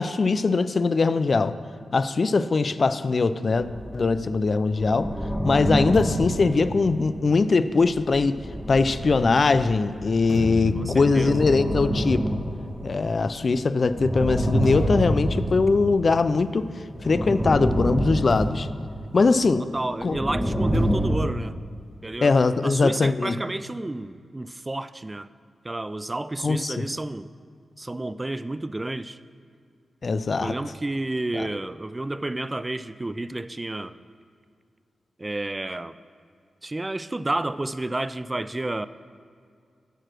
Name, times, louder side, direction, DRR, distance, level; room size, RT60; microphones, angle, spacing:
voice 1, 0.0-1.6 1.9-3.7 3.9-5.1 5.4-8.4 8.7-12.4 12.8-16.7 17.0-18.7 19.1-19.7 20.0-20.2 22.2-23.3 26.4-26.8 30.0-30.5 31.3-31.5, left 4 dB, 55° left, 13 dB, 0.3 m, -21 dB
sound 1, 3.5-4.3 4.6-7.4 7.8-10.4 10.8-13.4 13.8-16.3 16.9-19.4 19.9-21.2, equal, 5° left, 1.2 m, -28 dB
sound 2, 5.9-9.5 10.0-17.5 17.7-18.0 18.3-19.9 20.7-22.5, left 2 dB, 85° left, 1.0 m, -35 dB
voice 2, 10.7-11.4 19.7-21.6 22.0-22.3 22.6-25.3 25.6-27.3 27.8-29.2 30.4-33.9 35.2-35.9 36.6-38.9, right 2 dB, 25° right, 14 dB, 0.3 m, -30 dB
9.0 x 4.8 x 6.1 m, 2.3 s
cardioid pair, 50°, 0 cm